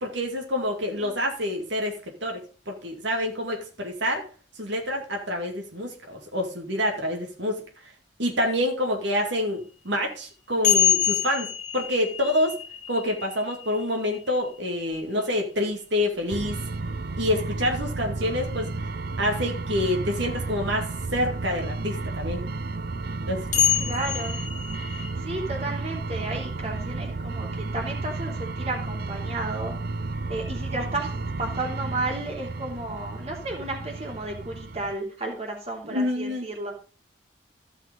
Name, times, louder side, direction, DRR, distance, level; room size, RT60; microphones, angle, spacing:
voice 1, 0.0-4.2 4.6-7.6 8.2-12.5 12.9-16.6 17.2-18.7 19.2-22.4 23.3-23.5 35.8-36.4, left 1 dB, 75° right, 2 dB, 2.4 m, -27 dB
sound 1, 10.6-14.9 16.7-16.8 19.8-19.9 23.5-25.1, left 10 dB, 40° left, 1.8 m, -26 dB
sound 2, 16.3-34.9, right 3 dB, 55° right, 0.5 m, -32 dB
voice 2, 23.8-24.4 25.0-29.8 30.3-31.1 31.4-36.7, right 2 dB, 35° right, 0 dB, 3.1 m, -33 dB
15.0 x 5.8 x 5.3 m, 0.37 s
head